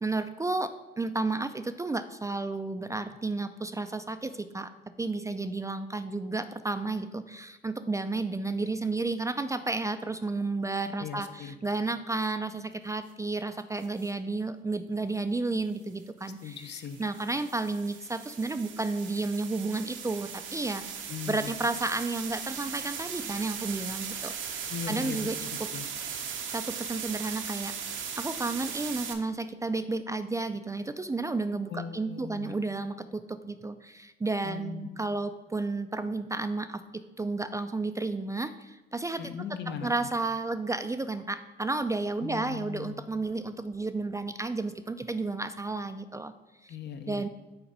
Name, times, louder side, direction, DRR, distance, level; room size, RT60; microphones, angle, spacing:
voice 1, 0.0-4.7 5.0-16.6 17.0-20.8 21.3-25.7 26.5-27.7 28.2-39.3 39.8-46.3 46.6-46.8 47.1-47.3, right 3 dB, 15° right, 10 dB, 0.3 m, -32 dB
voice 2, 11.0-11.6 16.4-17.0 21.1-21.5 24.7-25.9 31.7-32.5 34.4-35.0 39.2-39.9 42.2-43.0 46.7-47.3, left 7 dB, 60° left, 8 dB, 0.7 m, -39 dB
sound 1, 13.8-14.1 16.2-29.1, right 7 dB, 75° right, 0.8 m, -38 dB
5.8 x 4.0 x 5.4 m, 1.1 s
cardioid pair, 90°, 20 cm